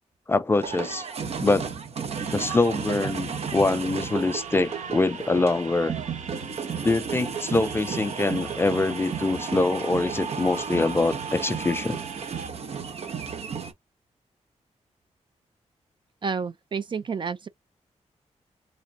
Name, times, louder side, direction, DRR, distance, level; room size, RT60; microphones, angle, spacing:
voice 1, 0.3-1.1 1.4-1.7 2.3-5.9 6.8-12.0, left 2 dB, 20° left, 0.4 m, -24 dB
sound 1, 0.6-13.7, right 6 dB, 60° right, 0.9 m, -33 dB
sound 2, 2.1-12.5, right 6 dB, 85° right, 0.9 m, -42 dB
voice 2, 16.2-17.5, right 5 dB, 40° right, 0.4 m, -30 dB
3.5 x 3.3 x 2.6 m
wide cardioid pair, 170°, 12 cm